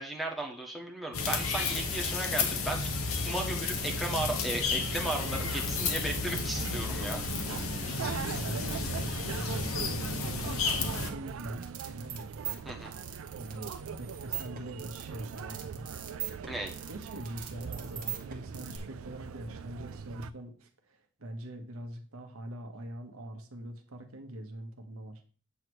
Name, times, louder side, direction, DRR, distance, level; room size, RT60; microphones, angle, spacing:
voice 1, 0.0-2.9 3.2-7.2 12.6-12.9 16.5-16.8, right 2 dB, ahead, -1 dB, 1.2 m, -35 dB
sound 1, 1.1-11.1, left 4 dB, 75° left, 1.1 m, -32 dB
sound 2, 5.1-20.3, right 7 dB, 70° right, 0.4 m, -41 dB
voice 2, 7.9-9.0 9.3-12.4 13.3-13.7 14.0-15.8 16.9-25.2, right 1 dB, 85° right, 5 dB, 1.2 m, -44 dB
sound 3, 11.3-18.8, right 10 dB, 40° right, 1.2 m, -41 dB
8.5 x 3.2 x 6.2 m, 0.41 s
head